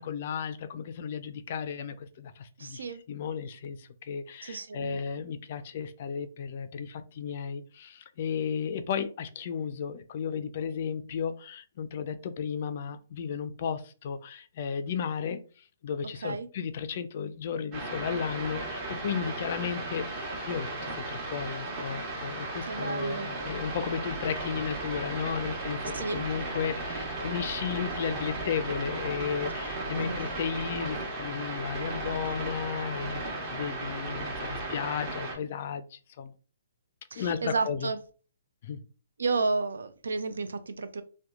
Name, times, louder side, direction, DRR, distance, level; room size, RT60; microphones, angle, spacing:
voice 1, 0.0-36.3 37.1-37.9 38.6-38.8, left 7 dB, 50° left, 0.3 m, -34 dB
voice 2, 2.6-3.0 4.4-5.0 16.2-16.5 22.7-23.3 25.9-26.3 29.9-30.2 37.1-38.0 39.2-41.0, right 4 dB, 80° right, 0.3 m, -32 dB
sound 1, 17.7-35.4, right 2 dB, 35° right, 1.0 m, -35 dB
2.8 x 2.1 x 2.3 m
hypercardioid pair, 140°, 0 cm